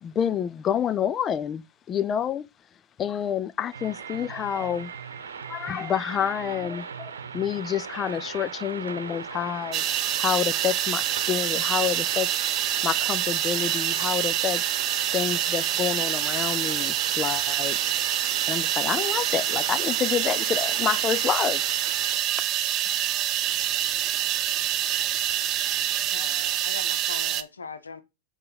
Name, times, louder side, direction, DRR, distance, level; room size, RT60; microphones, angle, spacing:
voice 1, 0.0-2.5 3.0-4.9 5.5-9.8 10.2-12.4 12.8-14.6 15.1-17.8 18.5-21.6, left 9 dB, 25° left, 0.3 m, -28 dB
sound 1, 3.7-22.2, right 6 dB, 65° right, 0.9 m, -38 dB
sound 2, 9.7-27.4, right 12 dB, 35° right, 0.5 m, -26 dB
voice 2, 23.5-26.0, right 1 dB, ahead, 2.1 m, -56 dB
voice 3, 26.0-28.0, left 5 dB, 75° left, 0.7 m, -40 dB
7.4 x 3.3 x 5.5 m
figure-of-eight pair, 90°, 0 cm